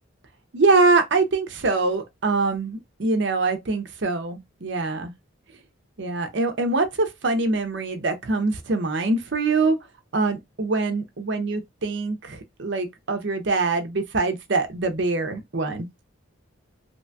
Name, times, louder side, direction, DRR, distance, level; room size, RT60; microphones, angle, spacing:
voice 1, 0.5-5.1 6.0-9.8 10.1-15.9, right 3 dB, 60° right, 0.6 m, -24 dB
2.9 x 2.2 x 2.6 m
head